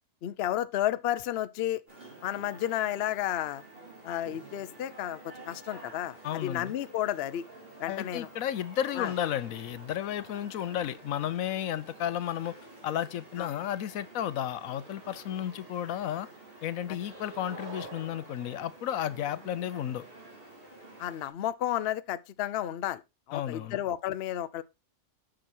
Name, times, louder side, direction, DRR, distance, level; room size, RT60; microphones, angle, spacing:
voice 1, 0.2-1.8 2.2-3.6 4.0-7.5 7.8-8.3 9.0-9.1 13.4-13.5 21.0-23.0 23.3-24.6, left 12 dB, 60° left, 0.7 m, -32 dB
sound 1, 1.9-21.3, right 2 dB, 40° right, 3.7 m, -49 dB
voice 2, 6.2-6.7 7.9-12.5 12.8-16.3 16.6-20.0 23.3-23.8, left 11 dB, 75° left, 1.1 m, -33 dB
8.8 x 6.2 x 4.3 m
omnidirectional pair, 1.5 m